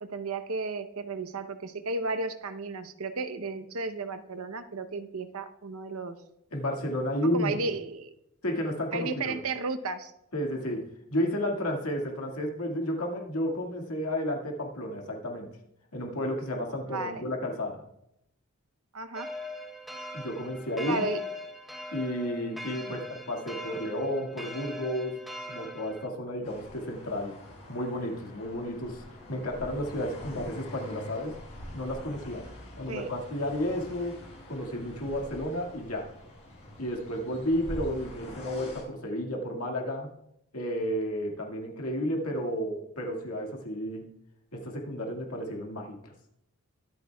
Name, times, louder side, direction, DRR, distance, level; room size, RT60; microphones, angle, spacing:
voice 1, 0.0-6.2 7.3-8.1 8.9-10.1 16.9-17.2 18.9-19.3 20.8-21.2 32.9-33.1, right 3 dB, 80° right, 9 dB, 0.8 m, -33 dB
voice 2, 6.5-7.6 8.4-9.4 10.3-15.6 15.9-17.8 20.1-21.0 21.9-25.2 25.5-27.4 27.7-29.0 29.3-31.4 31.7-32.5 32.8-34.2 34.5-36.1 36.8-40.1 40.5-44.1 44.5-46.0, equal, 90° left, 1 dB, 2.0 m, -32 dB
sound 1, 19.1-26.1, left 1 dB, ahead, 0.9 m, -40 dB
sound 2, 26.4-38.8, left 1 dB, 30° left, 5.2 m, -45 dB
23.0 x 8.1 x 2.3 m, 0.79 s
head